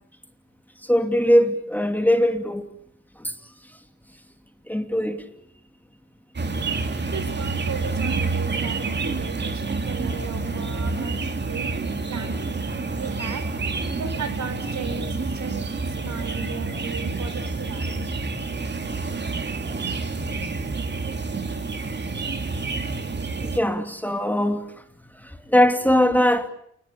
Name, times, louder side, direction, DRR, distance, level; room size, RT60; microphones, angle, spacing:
voice 1, 0.8-2.7 3.2-3.3 4.7-5.2 18.4-18.6 18.9-19.0 22.0-22.2 22.8-22.9 23.4-24.7 25.2-26.5, equal, 5° left, 7 dB, 2.5 m, -21 dB
sound 1, 6.4-23.6, right 3 dB, 35° right, 2.9 m, -28 dB
voice 2, 7.1-12.5 13.0-13.4 13.9-15.6 16.0-17.9, right 5 dB, 60° right, 10 dB, 5.2 m, -36 dB
28.5 x 20.5 x 8.7 m, 0.71 s
cardioid pair, 85°, 31 cm